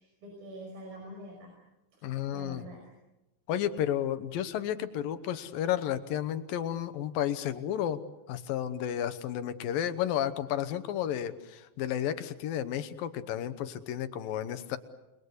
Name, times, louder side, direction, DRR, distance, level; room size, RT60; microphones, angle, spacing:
voice 1, 0.0-1.5 2.0-2.8, right 1 dB, 80° right, 1 dB, 7.2 m, -46 dB
voice 2, 2.0-2.6 3.5-8.0 8.3-14.8, left 10 dB, 80° left, 11 dB, 2.8 m, -32 dB
29.5 x 21.5 x 8.3 m, 0.98 s
omnidirectional pair, 4.1 m